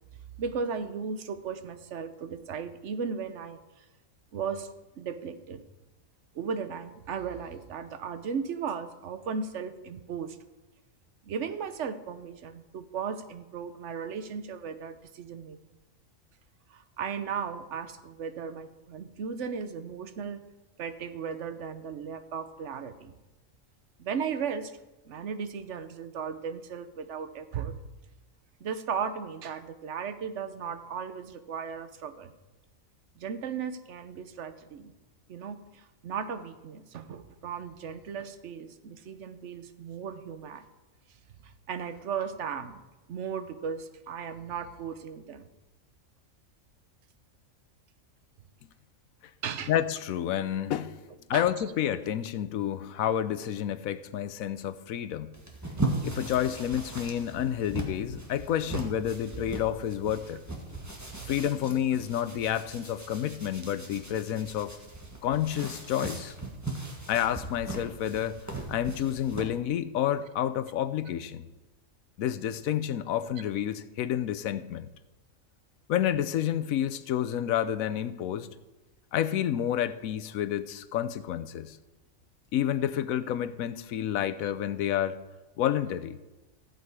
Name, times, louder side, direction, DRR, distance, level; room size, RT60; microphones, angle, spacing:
voice 1, 0.4-3.8 4.3-4.7 5.0-5.6 6.3-10.4 11.2-15.6 16.7-20.4 20.8-23.1 24.0-24.7 25.1-27.8 28.6-32.3 33.2-34.9 35.3-40.7 41.4-42.8 43.1-45.5 49.4-49.7 51.3-51.5 57.7-57.8 61.2-61.3, right 6 dB, 65° right, 11 dB, 1.1 m, -36 dB
voice 2, 49.7-51.0 51.3-55.3 56.0-60.4 61.3-64.7 65.2-66.3 67.1-71.5 72.2-74.9 75.9-78.5 79.1-81.8 82.5-85.2 85.6-86.2, left 10 dB, 85° left, 14 dB, 1.1 m, -29 dB
sound 1, 55.3-69.5, right 2 dB, 15° right, 1.5 m, -38 dB
14.5 x 7.9 x 4.7 m, 1.1 s
omnidirectional pair, 1.4 m